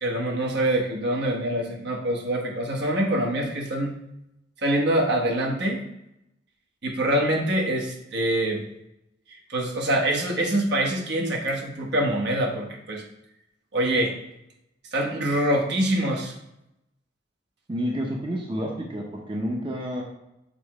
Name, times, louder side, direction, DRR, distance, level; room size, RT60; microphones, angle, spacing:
voice 1, 0.0-3.9 4.6-5.8 6.8-8.6 9.5-13.0 13.7-14.2 14.9-16.3, right 1 dB, 65° right, 0 dB, 1.3 m, -25 dB
voice 2, 17.7-20.0, equal, 25° right, -1 dB, 0.8 m, -29 dB
6.8 x 3.1 x 4.8 m, 0.86 s
head